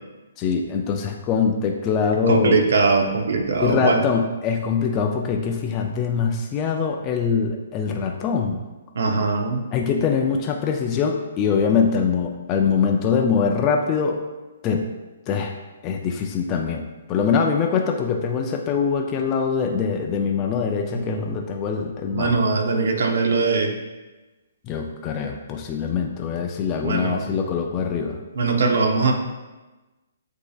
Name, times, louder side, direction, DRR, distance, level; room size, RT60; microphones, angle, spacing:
voice 1, 0.4-2.6 3.6-8.6 9.7-14.2 14.6-14.9 15.3-15.6 15.8-16.8 17.1-22.3 24.7-28.2, left 6 dB, 25° left, 2 dB, 0.4 m, -23 dB
voice 2, 2.3-4.0 8.9-9.7 20.9-21.3 22.1-23.7 26.8-27.2 28.4-29.1, right 4 dB, 70° right, 3 dB, 0.7 m, -21 dB
7.9 x 2.8 x 2.4 m, 1.1 s
hypercardioid pair, 155°, 0 cm